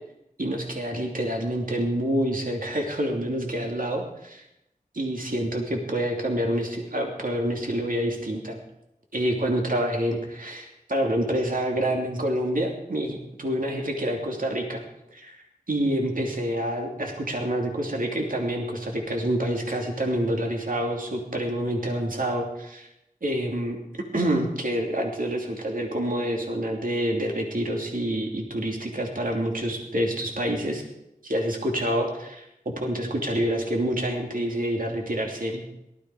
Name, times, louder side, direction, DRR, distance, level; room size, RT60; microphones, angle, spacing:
voice 1, 0.4-4.4 4.9-8.6 9.1-14.8 15.1-15.4 15.7-22.9 23.2-30.8 31.2-35.6, right 1 dB, 65° right, 1 dB, 2.9 m, -27 dB
18.5 x 13.0 x 4.9 m, 0.85 s
wide cardioid pair, 40°, 16 cm